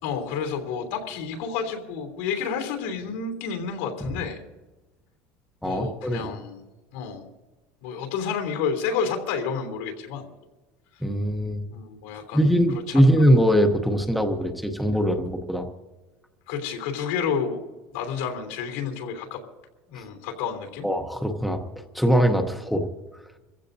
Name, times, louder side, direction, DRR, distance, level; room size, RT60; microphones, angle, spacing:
voice 1, 0.0-4.4 5.6-6.6 6.9-7.3 7.8-10.3 11.7-13.1 16.5-17.6 17.9-19.4 19.9-20.9, left 6 dB, 85° left, 3 dB, 3.1 m, -30 dB
voice 2, 5.6-6.3 11.0-11.6 12.3-15.7 20.8-21.6 21.9-22.9, equal, ahead, 4 dB, 0.7 m, -21 dB
26.5 x 15.0 x 2.6 m, 1.1 s
cardioid pair, 180°, 6 cm